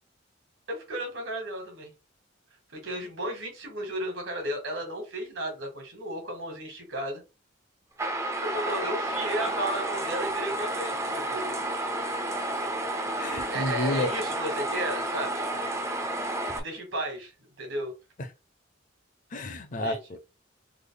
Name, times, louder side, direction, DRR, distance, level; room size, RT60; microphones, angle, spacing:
voice 1, 0.7-1.9 2.7-7.2 8.4-11.6 13.5-15.5 16.5-17.3 17.6-17.9 19.7-20.0, right 1 dB, 75° right, 1.4 m, -34 dB
sound 1, 8.0-16.6, right 1 dB, 15° right, 0.3 m, -31 dB
voice 2, 13.2-14.1 19.3-20.2, left 1 dB, 40° left, 0.5 m, -31 dB
3.3 x 2.0 x 3.8 m
head